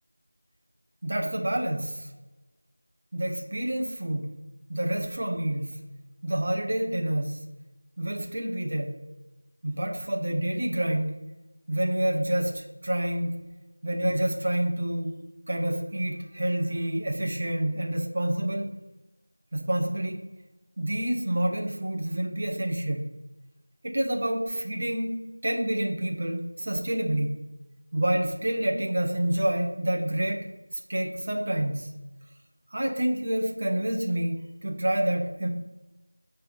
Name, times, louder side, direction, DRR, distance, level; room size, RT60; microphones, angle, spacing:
voice 1, 1.0-2.1 3.1-4.3 4.7-5.7 6.2-7.4 8.0-9.0 9.6-11.1 11.7-13.3 13.8-15.1 15.5-18.7 19.5-20.2 20.8-23.0 23.8-27.4 27.9-30.4 30.9-31.9 32.7-35.5, right 1 dB, 30° right, 2 dB, 1.0 m, -28 dB
8.9 x 3.5 x 5.4 m, 1.1 s
figure-of-eight pair, 175°, 0 cm